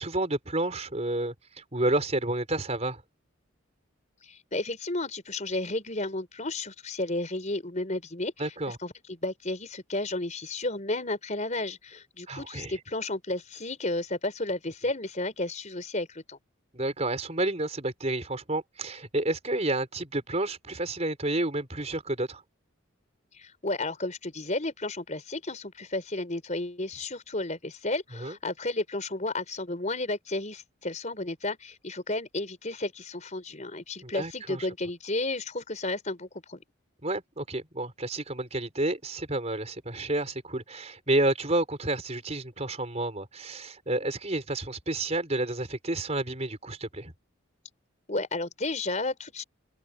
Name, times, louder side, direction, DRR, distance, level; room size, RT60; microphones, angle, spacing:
voice 1, 0.0-3.0 8.4-8.8 12.3-12.7 16.7-22.4 28.2-28.4 34.0-34.7 37.0-47.1, right 2 dB, 35° right, 4.5 m, -30 dB
voice 2, 4.2-16.4 23.3-36.6 48.1-49.4, left 2 dB, 35° left, 4.7 m, -32 dB
head